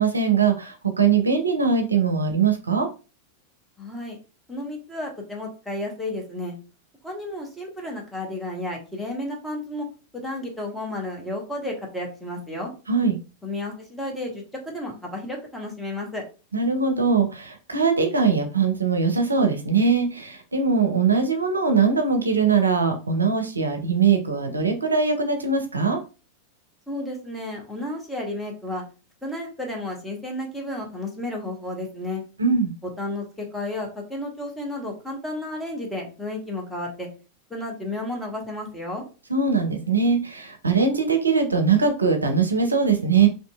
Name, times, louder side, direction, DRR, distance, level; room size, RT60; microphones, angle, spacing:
voice 1, 0.0-2.9 12.9-13.1 16.5-26.0 32.4-32.7 39.3-43.3, right 5 dB, 80° right, 5 dB, 0.4 m, -21 dB
voice 2, 3.8-4.2 4.5-6.5 7.0-9.9 10.1-12.7 13.4-16.2 26.9-28.8 29.2-32.2 33.0-37.1 37.5-39.0, left 1 dB, 5° left, -1 dB, 0.8 m, -32 dB
2.6 x 2.6 x 2.3 m, 0.33 s
figure-of-eight pair, 90°, 0 cm